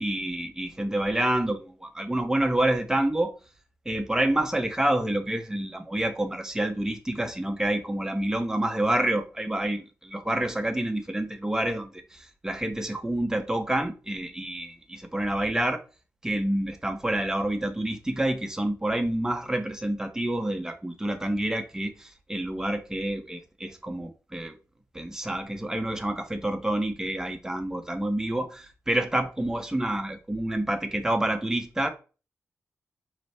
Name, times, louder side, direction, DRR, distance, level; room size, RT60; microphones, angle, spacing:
voice 1, 0.0-3.3 3.9-15.8 16.2-24.5 24.9-31.9, right 1 dB, 10° right, 0.7 m, -28 dB
4.9 x 2.0 x 4.2 m
cardioid pair, 85°, 5 cm